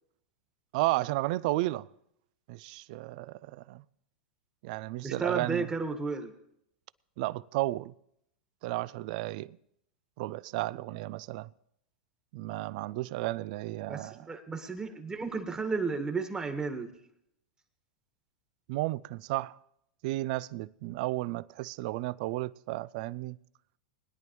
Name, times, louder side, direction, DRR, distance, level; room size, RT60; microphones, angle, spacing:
voice 1, 0.7-1.9 2.5-3.8 4.6-5.7 7.2-7.9 8.6-9.6 10.2-11.5 12.3-14.3 18.7-19.6 20.0-23.4, right 18 dB, 60° right, 0.4 m, -33 dB
voice 2, 5.0-6.3 13.9-16.9, right 4 dB, 15° right, 1.6 m, -33 dB
20.5 x 10.5 x 3.1 m
hypercardioid pair, 110°, 5 cm